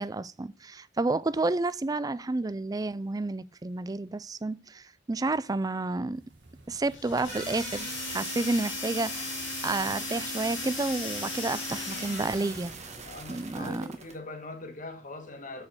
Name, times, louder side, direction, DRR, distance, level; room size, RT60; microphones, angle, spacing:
voice 1, 0.0-6.2 6.7-9.4 9.6-12.7 13.3-13.9, right 2 dB, 20° right, 0.4 m, -30 dB
sound 1, 6.1-13.8, right 2 dB, 65° right, 2.0 m, -54 dB
sound 2, 6.9-12.8, left 8 dB, 75° left, 1.0 m, -38 dB
sound 3, 6.9-14.2, right 6 dB, 35° right, 1.6 m, -40 dB
voice 2, 13.0-15.7, left 2 dB, 45° left, 1.8 m, -42 dB
8.4 x 5.2 x 6.4 m
head